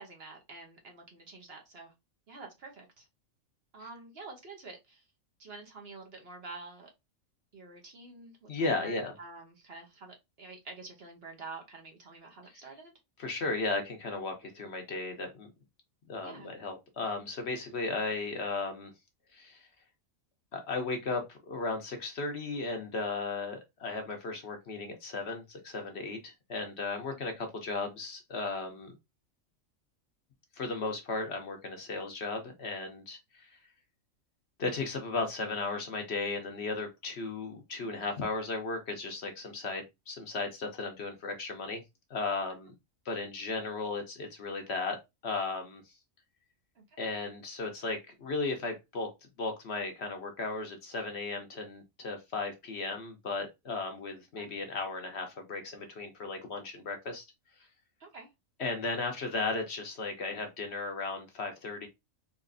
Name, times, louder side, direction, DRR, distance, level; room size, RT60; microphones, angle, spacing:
voice 1, 0.0-1.9 2.3-3.1 3.7-5.0 5.4-6.9 7.5-12.9 16.2-16.5 42.5-42.6 46.7-46.9 54.4-54.5 58.0-58.3, right 3 dB, 50° right, 1.2 m, -48 dB
voice 2, 8.5-9.1 13.2-15.5 16.1-18.9 19.3-19.7 20.5-28.9 30.6-33.6 34.6-41.8 42.1-42.7 43.0-45.0 45.2-45.8 47.0-49.1 49.4-57.2 58.6-61.9, left 3 dB, 55° left, 1.1 m, -35 dB
4.1 x 2.8 x 2.6 m
omnidirectional pair, 1.4 m